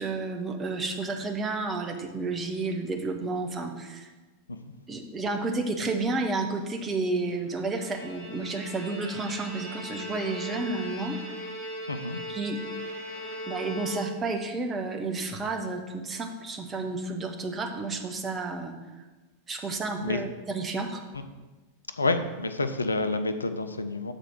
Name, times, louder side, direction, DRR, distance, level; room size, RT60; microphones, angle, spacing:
voice 1, 0.0-4.1 4.9-11.2 12.3-12.6 13.5-18.7 19.5-21.0, right 3 dB, 20° right, 3 dB, 0.9 m, -31 dB
Bowed string instrument, 7.5-14.5, right 1 dB, 35° left, 2.6 m, -39 dB
voice 2, 11.9-12.2 20.0-20.2 22.0-24.1, left 2 dB, 80° left, 9 dB, 0.5 m, -28 dB
6.7 x 4.3 x 6.0 m, 1.2 s
figure-of-eight pair, 90°, 0 cm